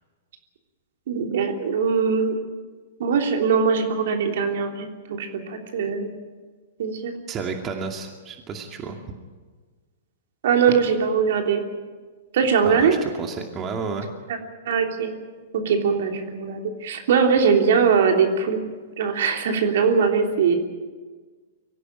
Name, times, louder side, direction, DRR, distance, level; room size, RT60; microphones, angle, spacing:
voice 1, 1.1-2.4 3.0-6.1 6.8-7.1 10.4-11.6 12.3-12.9 14.6-15.1 15.5-18.6 19.0-20.5, right 6 dB, 60° right, 3 dB, 3.2 m, -21 dB
voice 2, 7.3-9.0 12.6-14.1, right 5 dB, 25° right, 3 dB, 2.4 m, -31 dB
24.0 x 16.0 x 8.9 m, 1.4 s
figure-of-eight pair, 110°, 0 cm